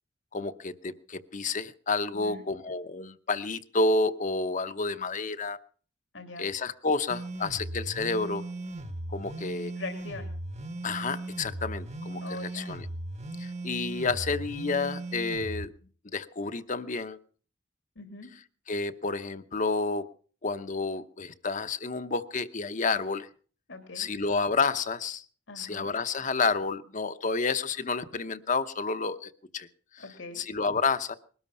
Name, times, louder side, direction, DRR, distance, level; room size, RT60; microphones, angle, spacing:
voice 1, 0.3-5.6 6.4-8.4 9.1-9.7 10.8-12.9 13.4-15.7 16.0-17.2 18.7-20.0 20.4-23.3 23.9-25.2 25.6-29.7 29.9-30.0 30.4-31.2, left 4 dB, 45° left, 10 dB, 0.8 m, -30 dB
voice 2, 6.1-6.5 9.8-10.3 12.2-12.7 17.9-18.3 23.7-24.1 25.5-25.9 30.0-30.4, left 3 dB, 90° left, 5 dB, 2.9 m, -42 dB
sound 1, 7.1-15.6, right 2 dB, 35° right, 1.2 m, -37 dB
20.5 x 13.0 x 5.5 m, 0.43 s
head